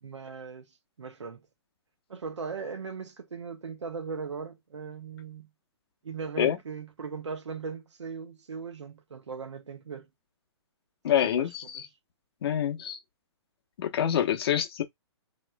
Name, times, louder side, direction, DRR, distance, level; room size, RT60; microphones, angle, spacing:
voice 1, 0.0-0.7 1.0-1.5 2.1-5.5 6.0-10.1 11.1-11.9, right 5 dB, 90° right, 1.0 m, -39 dB
voice 2, 11.0-11.9 12.4-13.0 13.8-14.8, left 10 dB, 60° left, 0.9 m, -26 dB
3.1 x 3.1 x 2.2 m
hypercardioid pair, 135°, 15 cm